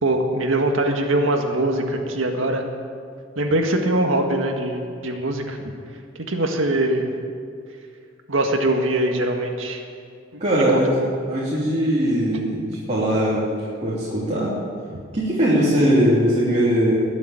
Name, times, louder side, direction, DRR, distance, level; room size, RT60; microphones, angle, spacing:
voice 1, 0.0-2.7 3.4-5.7 6.3-7.1 8.3-9.8 10.3-10.8 14.9-15.0, right 1 dB, 90° right, 3 dB, 1.8 m, -22 dB
voice 2, 10.4-10.9 11.3-13.5 13.8-14.5 15.1-17.0, equal, 35° right, -8 dB, 3.2 m, -20 dB
21.0 x 7.2 x 9.1 m, 2.3 s
head